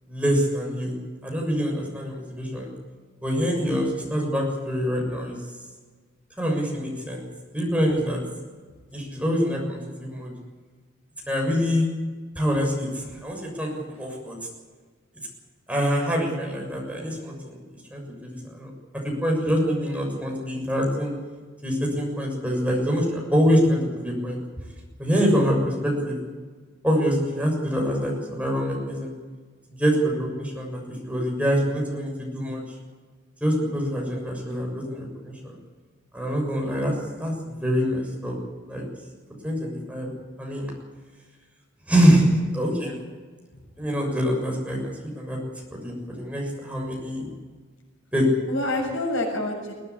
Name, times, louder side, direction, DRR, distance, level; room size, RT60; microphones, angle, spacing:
voice 1, 0.1-0.9 1.2-2.7 3.2-5.4 6.4-7.2 7.5-8.2 8.9-10.3 11.3-11.8 12.4-13.7 14.0-14.4 15.7-17.6 17.9-18.7 19.0-21.1 21.6-24.4 25.0-26.2 26.8-29.1 29.7-32.6 33.4-35.6 36.1-36.9 37.2-38.4 38.7-38.9 39.4-40.7 41.9-43.0 43.8-45.4 45.7-47.3 48.1-48.2, equal, 5° right, -1 dB, 6.9 m, -25 dB
voice 2, 34.5-34.9 48.5-49.7, left 1 dB, 75° left, 2 dB, 7.0 m, -28 dB
21.5 x 18.5 x 8.6 m, 1.4 s
head